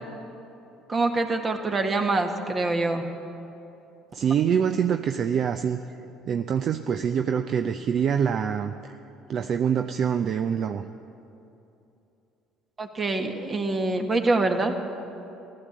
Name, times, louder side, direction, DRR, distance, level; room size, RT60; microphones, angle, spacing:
voice 1, 0.9-3.1 12.8-14.7, right 2 dB, 30° right, 5 dB, 1.8 m, -25 dB
voice 2, 4.1-5.8 6.3-8.9 9.3-10.8, right 7 dB, 50° right, 8 dB, 0.5 m, -25 dB
15.0 x 13.0 x 7.4 m, 2.9 s
hypercardioid pair, 65°, 0 cm